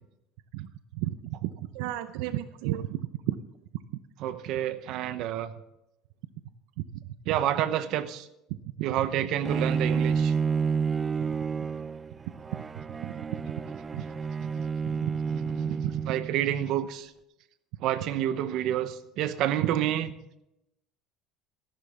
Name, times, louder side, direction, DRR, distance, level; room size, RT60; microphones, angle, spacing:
voice 1, 0.5-1.1 1.4-2.9 3.3-3.4 13.0-13.2 13.9-14.0 15.0-15.2 15.7-16.1, right 14 dB, 80° right, 0.6 m, -33 dB
voice 2, 4.2-5.5 7.3-8.3 8.8-10.3 15.3-17.1 17.8-20.1, right 11 dB, 55° right, 0.9 m, -29 dB
Bowed string instrument, 9.5-16.5, right 6 dB, 15° right, 0.3 m, -30 dB
14.0 x 12.0 x 3.6 m
cardioid pair, 160°, 0 cm